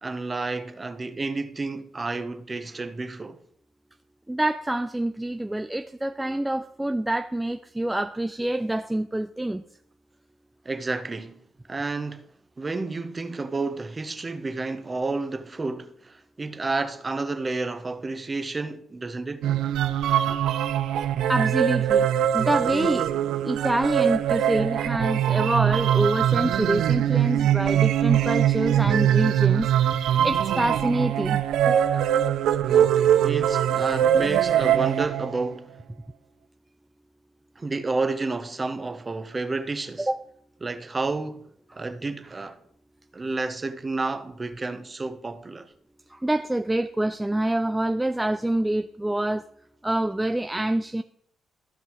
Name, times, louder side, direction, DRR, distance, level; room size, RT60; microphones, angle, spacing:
voice 1, 0.0-3.4 10.6-11.4 11.7-12.3 12.6-19.5 32.6-35.8 37.6-40.1 40.6-42.6 43.1-45.7, right 3 dB, 25° right, 0.8 m, -30 dB
voice 2, 4.3-9.6 20.3-20.4 21.3-22.1 22.3-23.1 23.4-29.7 30.0-32.3 40.1-40.2 46.1-49.5 49.8-51.0, right 1 dB, 10° right, 0.4 m, -26 dB
sound 1, 19.4-35.5, right 10 dB, 80° right, 0.4 m, -22 dB
15.0 x 5.4 x 3.1 m
cardioid pair, 90°, 0 cm